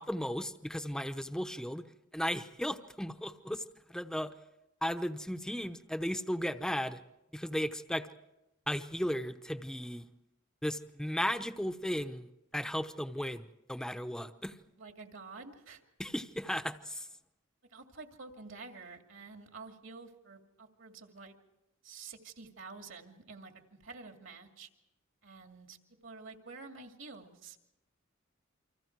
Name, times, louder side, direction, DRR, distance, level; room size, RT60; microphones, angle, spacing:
voice 1, 0.0-1.9 2.1-3.6 3.9-4.3 4.8-7.0 7.3-8.1 8.7-10.0 10.6-14.5 16.0-17.1, equal, 5° left, 9 dB, 0.8 m, -35 dB
voice 2, 14.8-15.8 17.7-21.4 21.8-24.7 25.2-25.8 26.0-27.6, right 4 dB, 65° right, 4 dB, 2.4 m, -49 dB
29.0 x 25.0 x 4.7 m, 0.94 s
head